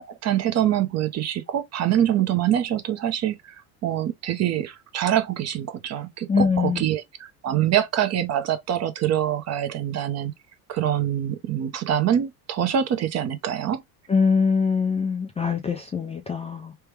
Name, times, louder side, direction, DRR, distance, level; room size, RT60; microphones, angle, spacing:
voice 1, 0.0-10.3 10.7-13.8, right 10 dB, 40° right, 0.7 m, -25 dB
voice 2, 6.3-6.8 14.1-16.7, left 5 dB, 15° left, 0.3 m, -23 dB
3.4 x 2.2 x 3.1 m
supercardioid pair, 110°, 43 cm